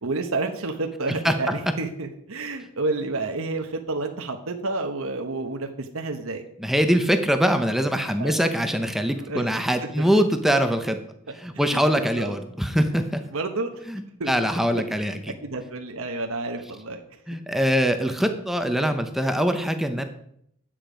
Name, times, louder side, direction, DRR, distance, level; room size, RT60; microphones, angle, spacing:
voice 1, 0.0-6.4 8.2-8.4 9.2-9.4 9.8-10.2 11.6-12.3 13.3-13.7 14.2-14.3 15.4-17.0, right 3 dB, 80° right, 4 dB, 1.1 m, -30 dB
voice 2, 6.6-11.0 11.3-13.2 13.9-15.3 17.3-20.1, equal, ahead, 6 dB, 0.8 m, -23 dB
10.5 x 8.7 x 5.1 m, 0.70 s
head